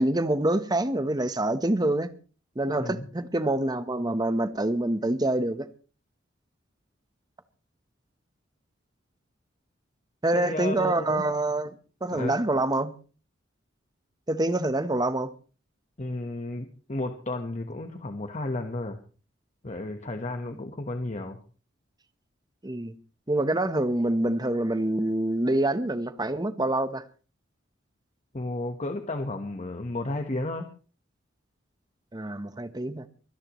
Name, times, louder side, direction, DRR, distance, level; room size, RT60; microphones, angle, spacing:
voice 1, 0.0-2.1 2.6-5.7 10.2-11.8 12.0-13.0 14.3-15.3 22.6-22.9 23.3-27.0 32.1-33.1, right 1 dB, 20° right, 1.0 m, -26 dB
voice 2, 10.3-11.2 12.1-12.4 16.0-19.0 19.6-21.4 28.3-30.7, left 2 dB, 35° left, 1.3 m, -33 dB
23.5 x 17.5 x 3.1 m
head